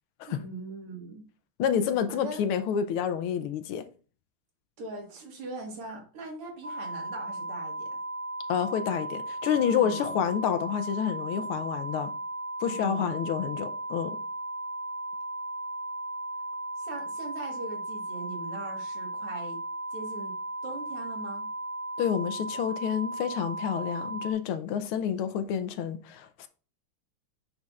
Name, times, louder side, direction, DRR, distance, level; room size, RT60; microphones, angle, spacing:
voice 1, 0.3-1.2 2.1-2.4 4.8-7.9 9.8-10.1 12.7-13.1 16.8-19.6 19.9-20.4 20.6-21.5, right 2 dB, 90° right, 2.7 m, -41 dB
voice 2, 1.6-3.9 8.5-12.1 12.6-14.2 22.0-26.5, left 8 dB, 85° left, 1.5 m, -29 dB
sound 1, 6.6-24.3, right 1 dB, 50° right, 1.5 m, -36 dB
9.6 x 5.4 x 2.4 m
omnidirectional pair, 2.4 m